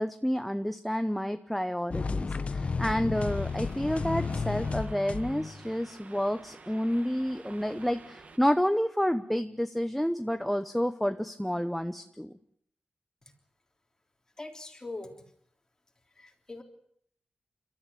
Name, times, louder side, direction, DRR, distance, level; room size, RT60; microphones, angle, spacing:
voice 1, 0.0-12.4, equal, 5° left, 8 dB, 0.9 m, -29 dB
sound 1, 1.9-5.7, left 4 dB, 40° left, 1.1 m, -32 dB
sound 2, 3.1-8.4, right 4 dB, 50° right, 2.0 m, -51 dB
voice 2, 14.4-15.2 16.1-16.6, left 2 dB, 20° left, 3 dB, 3.5 m, -41 dB
29.5 x 13.5 x 10.0 m, 0.69 s
wide cardioid pair, 165°, 3 cm